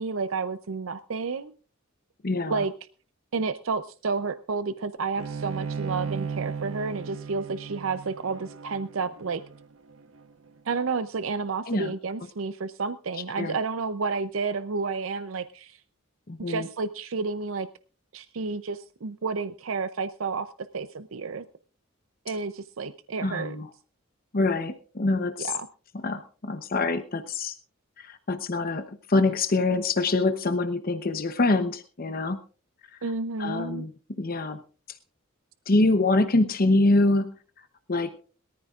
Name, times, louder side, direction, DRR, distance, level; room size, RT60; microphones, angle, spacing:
voice 1, 0.0-1.5 2.4-2.7 3.3-9.4 10.6-15.8 16.5-17.7 18.1-21.4 22.3-23.6 25.4-25.7 33.0-33.9, right 4 dB, 75° right, 12 dB, 0.6 m, -31 dB
voice 2, 2.2-2.6 11.7-11.9 13.4-13.5 16.3-16.7 23.2-23.7 24.3-25.5 26.0-27.6 28.0-32.4 32.9-33.0 33.4-33.9 34.2-34.6 34.9-35.0 35.7-37.3 37.9-38.2, left 2 dB, 45° left, 9 dB, 0.9 m, -25 dB
Bowed string instrument, 5.2-10.5, right 6 dB, 90° right, 1.1 m, -36 dB
22.0 x 14.0 x 2.5 m, 0.37 s
head